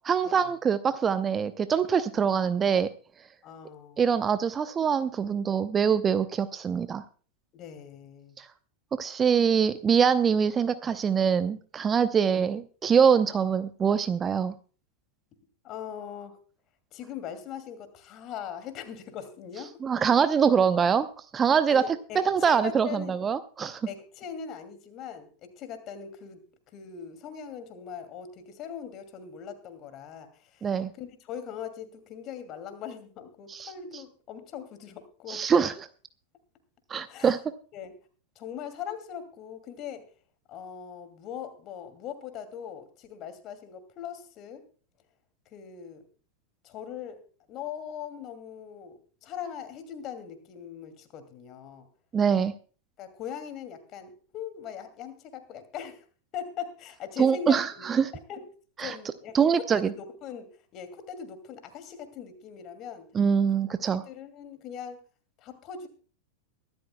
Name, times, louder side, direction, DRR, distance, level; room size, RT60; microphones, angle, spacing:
voice 1, 0.0-2.9 4.0-7.0 8.4-8.5 9.0-14.5 19.8-21.1 21.3-21.8 22.1-23.8 30.6-30.9 33.5-33.7 35.3-35.9 36.9-37.4 52.1-52.5 57.2-58.1 58.8-59.0 59.3-59.9 63.1-64.0, right 7 dB, 20° right, 13 dB, 0.7 m, -24 dB
voice 2, 3.4-4.2 7.5-8.4 12.3-12.4 15.6-16.4 16.9-19.7 21.7-23.2 23.9-26.4 26.7-35.4 37.1-37.3 37.7-37.9 38.4-40.0 40.5-44.6 45.5-46.0 46.6-47.2 47.5-51.9 53.0-56.1 56.3-57.9 58.3-58.4 58.8-63.1 64.1-65.0 65.4-65.9, left 8 dB, 35° left, 9 dB, 2.4 m, -40 dB
23.5 x 12.5 x 2.2 m, 0.40 s
figure-of-eight pair, 90°, 0 cm